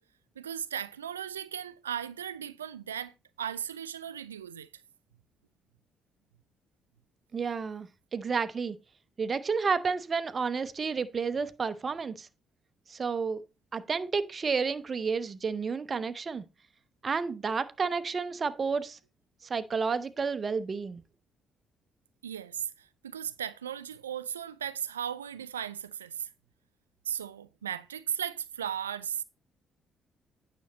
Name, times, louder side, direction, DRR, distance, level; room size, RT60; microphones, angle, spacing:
voice 1, 0.4-4.7 22.2-26.3 27.1-29.2, right 9 dB, 90° right, 0.4 m, -36 dB
voice 2, 7.3-8.8 9.2-12.3 12.9-13.4 13.7-16.4 17.0-19.0 19.5-21.0, right 5 dB, 40° right, 0.8 m, -31 dB
9.3 x 6.1 x 4.2 m
hypercardioid pair, 45°, 0 cm